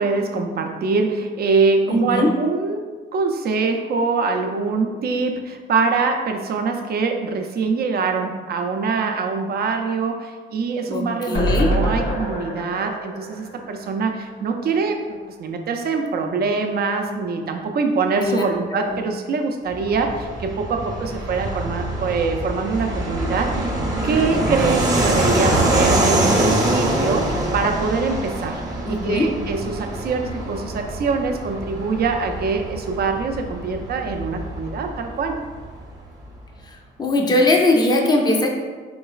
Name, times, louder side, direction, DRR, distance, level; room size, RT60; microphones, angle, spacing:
voice 1, 0.0-23.7 24.0-28.6 28.9-35.4, right 4 dB, 50° right, 4 dB, 0.4 m, -24 dB
voice 2, 1.9-2.3 10.9-11.7 18.2-18.4 18.8-19.0 28.9-29.3 37.0-38.5, left 2 dB, 20° left, 1 dB, 0.5 m, -20 dB
sound 1, 11.3-14.6 14.9-15.0 15.3-15.4, equal, 75° left, 0.7 m, -26 dB
Fixed-wing aircraft airplane, 19.7-35.9, right 1 dB, 20° right, 0.7 m, -24 dB
3.8 x 3.0 x 2.4 m, 1.4 s
cardioid pair, 90°, 20 cm